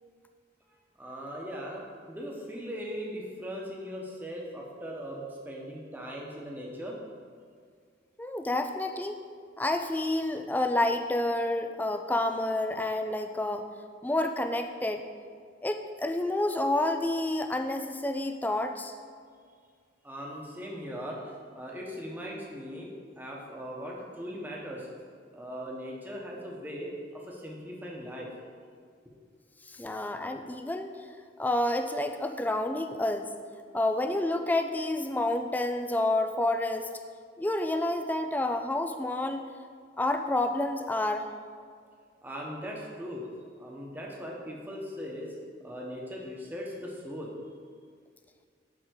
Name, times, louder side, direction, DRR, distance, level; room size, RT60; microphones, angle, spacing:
voice 1, 1.0-6.9 20.0-24.9 25.3-28.3 42.2-43.2 43.6-45.3 45.6-47.3, equal, 10° right, -2 dB, 1.0 m, -39 dB
voice 2, 8.2-9.2 9.6-13.7 14.0-15.0 15.6-18.9 29.7-31.0 31.4-33.3 33.7-37.0 37.4-39.5 40.0-41.3, left 1 dB, 10° left, 6 dB, 0.3 m, -29 dB
8.0 x 3.7 x 6.3 m, 2.1 s
head